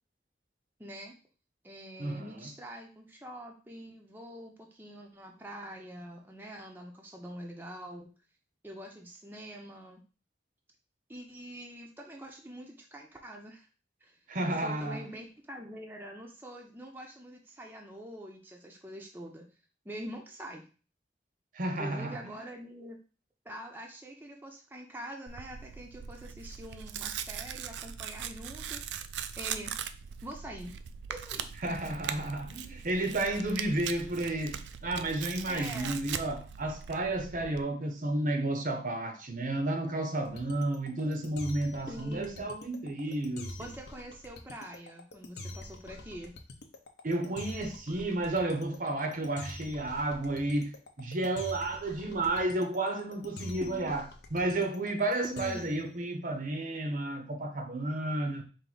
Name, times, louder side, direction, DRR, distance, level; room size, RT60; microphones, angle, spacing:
voice 1, 0.8-1.2 1.6-8.1 8.6-10.0 11.1-13.7 14.0-14.2 14.5-19.5 19.8-20.6 21.8-23.0 23.4-28.8 29.4-29.7 30.2-30.7 31.1-31.5 33.5-33.7 35.5-36.0 41.9-42.5 43.6-46.4 53.6-54.0 55.2-55.6, right 1 dB, 10° right, 0.6 m, -45 dB
voice 2, 2.0-2.5 14.3-15.1 21.5-22.2 31.6-43.7 47.0-50.7 51.0-54.0 54.3-58.4, right 2 dB, 50° right, 0.7 m, -32 dB
Tearing, 25.3-37.6, right 8 dB, 85° right, 0.3 m, -40 dB
sound 1, 40.2-55.9, left 2 dB, 65° left, 0.6 m, -45 dB
4.6 x 2.6 x 3.9 m
head